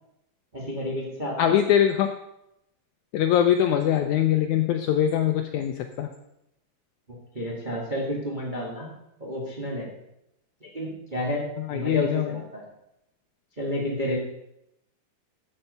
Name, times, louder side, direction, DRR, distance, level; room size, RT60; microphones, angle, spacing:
voice 1, 0.5-1.6 7.3-8.9 9.2-9.9 10.6-12.6 13.6-14.2, equal, 20° right, -3 dB, 1.3 m, -31 dB
voice 2, 1.4-2.1 3.1-6.1 11.7-12.3, left 10 dB, 85° left, 6 dB, 1.7 m, -22 dB
13.0 x 6.7 x 5.5 m, 0.83 s
omnidirectional pair, 4.2 m